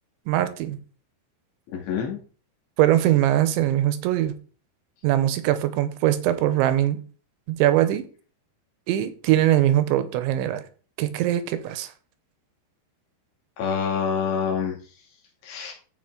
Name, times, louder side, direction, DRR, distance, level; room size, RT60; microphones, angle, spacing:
voice 1, 0.3-0.8 2.8-4.4 5.0-7.0 7.5-8.1 8.9-10.6 11.0-11.9, right 13 dB, 85° right, 3.1 m, -21 dB
voice 2, 1.7-2.2 13.6-14.8 15.4-15.7, left 7 dB, 70° left, 4.6 m, -26 dB
14.5 x 5.1 x 3.8 m
omnidirectional pair, 5.4 m